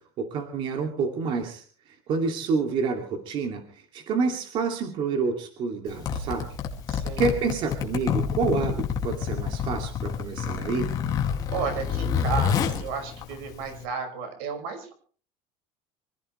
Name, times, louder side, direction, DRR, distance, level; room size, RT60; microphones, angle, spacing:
voice 1, 0.2-1.6 2.1-6.5 7.2-10.9, right 4 dB, 40° right, 4 dB, 2.6 m, -28 dB
Zipper (clothing), 5.9-13.8, left 7 dB, 30° left, 2.4 m, -28 dB
voice 2, 6.9-7.3 11.5-14.9, right 6 dB, 90° right, 5 dB, 5.8 m, -33 dB
25.5 x 15.5 x 3.3 m, 0.42 s
cardioid pair, 180°, 13 cm